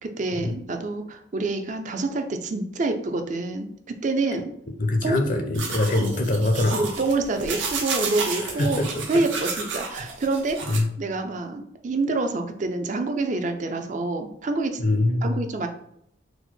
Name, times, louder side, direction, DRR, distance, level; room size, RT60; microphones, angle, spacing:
voice 1, 0.0-3.7 4.0-4.5 5.0-5.2 6.6-8.8 9.1-14.8 15.2-15.7, right 3 dB, 40° right, 6 dB, 0.5 m, -27 dB
voice 2, 4.8-6.8 8.6-8.9 10.7-10.9 14.8-15.4, left 2 dB, 45° left, 5 dB, 0.5 m, -23 dB
sound 1, 5.5-10.8, right 4 dB, 85° right, 0.9 m, -31 dB
4.2 x 2.1 x 4.4 m, 0.75 s
head